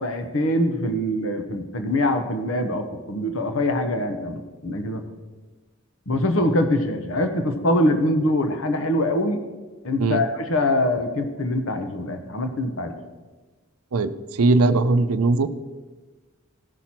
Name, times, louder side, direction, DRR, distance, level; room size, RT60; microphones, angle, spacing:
voice 1, 0.0-5.0 6.1-9.4 9.8-12.9, left 1 dB, 65° left, 7 dB, 0.9 m, -23 dB
voice 2, 13.9-15.5, right 3 dB, 85° right, 11 dB, 0.6 m, -20 dB
15.0 x 6.0 x 4.3 m, 1.3 s
head